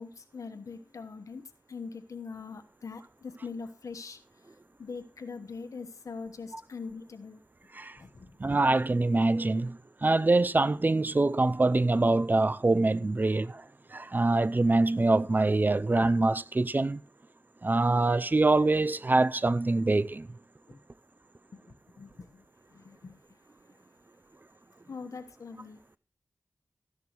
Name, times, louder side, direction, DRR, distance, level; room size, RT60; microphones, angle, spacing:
voice 1, 0.0-1.4 1.7-7.4 7.9-8.4 20.7-20.8 21.5-23.2 24.9-26.0, left 4 dB, 85° left, 1.1 m, -43 dB
voice 2, 8.4-13.6 13.9-17.0 17.6-20.3, right 2 dB, 35° right, 0.4 m, -24 dB
14.0 x 10.5 x 3.0 m
wide cardioid pair, 55°, 5 cm